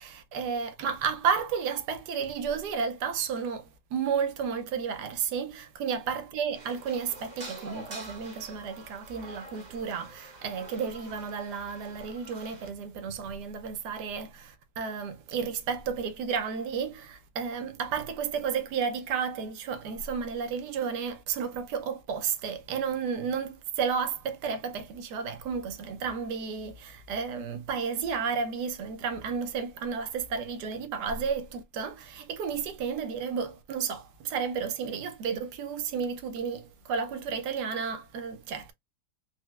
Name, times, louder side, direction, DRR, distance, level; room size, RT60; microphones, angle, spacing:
voice 1, 0.0-38.7, right 6 dB, 85° right, 1.3 m, -32 dB
sound 1, 6.5-12.7, right 2 dB, 30° right, 0.9 m, -47 dB
4.3 x 2.0 x 2.2 m
omnidirectional pair, 1.8 m